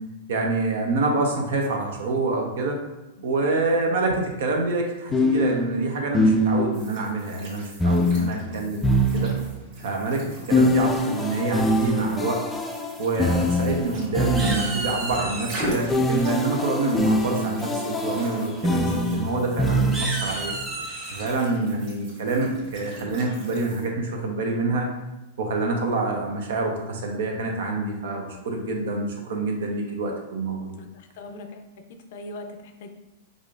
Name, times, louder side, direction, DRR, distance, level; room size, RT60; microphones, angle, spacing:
voice 1, 0.3-2.8 3.2-9.3 9.8-12.4 13.0-20.5 21.1-24.9 25.4-30.8, right 3 dB, 75° right, 2 dB, 0.8 m, -26 dB
sound 1, 4.1-4.2 5.1-6.9 7.8-9.7 10.5-15.0 15.9-20.4, left 1 dB, 10° left, 0.4 m, -24 dB
sound 2, 6.7-23.9, equal, 55° right, 1.4 m, -41 dB
sound 3, 13.4-14.0 14.3-15.7 17.2-17.6 18.0-18.2 18.5-18.6 19.0-19.2 19.8-21.3, right 2 dB, 20° right, 1.2 m, -33 dB
voice 2, 21.4-21.8 30.8-32.9, left 2 dB, 65° left, 5 dB, 0.5 m, -41 dB
4.9 x 2.5 x 2.5 m, 1.0 s
hypercardioid pair, 120°, 0 cm